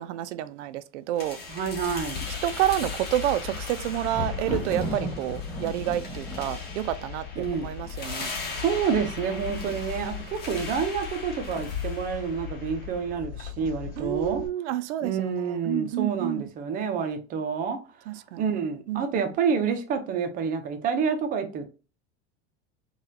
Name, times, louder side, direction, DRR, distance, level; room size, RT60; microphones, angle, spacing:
voice 1, 0.0-1.4 2.4-8.3 9.6-9.8 14.0-15.2 15.5-16.4 18.1-18.5 18.9-19.3, right 13 dB, 85° right, 0.5 m, -29 dB
sound 1, 1.2-13.1, left 3 dB, 30° left, 1.2 m, -40 dB
sound 2, 1.4-14.5, left 9 dB, 50° left, 2.0 m, -38 dB
voice 2, 1.5-2.3 7.4-7.7 8.5-14.4 15.0-17.8 18.4-21.6, right 6 dB, 25° right, 0.5 m, -28 dB
Thunder, 3.4-8.3 9.0-9.5 9.8-9.9, equal, ahead, 1.2 m, -36 dB
4.1 x 2.4 x 2.6 m
supercardioid pair, 150°, 34 cm